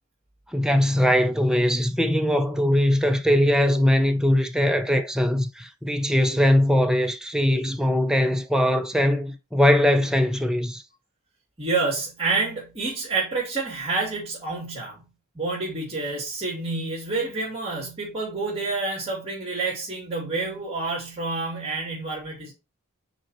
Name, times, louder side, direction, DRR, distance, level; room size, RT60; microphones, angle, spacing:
voice 1, 0.5-10.8, left 1 dB, 5° right, 0.6 m, -21 dB
voice 2, 11.6-15.1 15.3-22.5, right 3 dB, 25° right, 2.7 m, -28 dB
6.2 x 4.4 x 4.3 m
head